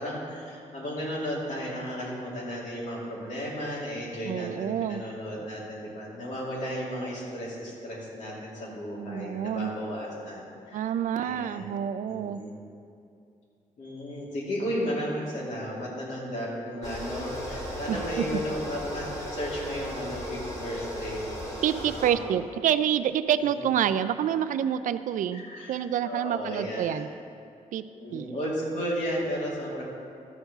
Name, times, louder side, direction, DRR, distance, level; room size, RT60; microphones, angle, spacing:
voice 1, 0.0-11.7 12.0-12.5 13.8-21.2 21.7-22.3 23.4-23.7 25.3-25.8 26.0-27.1 27.9-29.8, equal, 65° left, -4 dB, 2.5 m, -34 dB
voice 2, 4.2-5.0 9.0-9.7 10.7-12.4 17.9-18.4 21.6-27.1 27.7-27.8 28.1-28.4, right 9 dB, 75° right, 13 dB, 0.4 m, -28 dB
sound 1, 16.8-22.1, equal, 25° left, 2.1 m, -36 dB
12.5 x 4.6 x 6.8 m, 2.5 s
wide cardioid pair, 165°, 13 cm